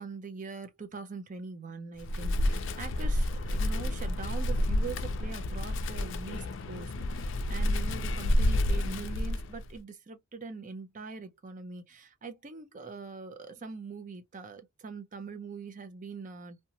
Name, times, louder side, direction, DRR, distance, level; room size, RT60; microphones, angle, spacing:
voice 1, 0.0-16.6, right 4 dB, 40° right, 0.5 m, -43 dB
Wind, 2.0-9.7, left 1 dB, 60° left, 0.4 m, -29 dB
2.9 x 2.2 x 2.7 m
head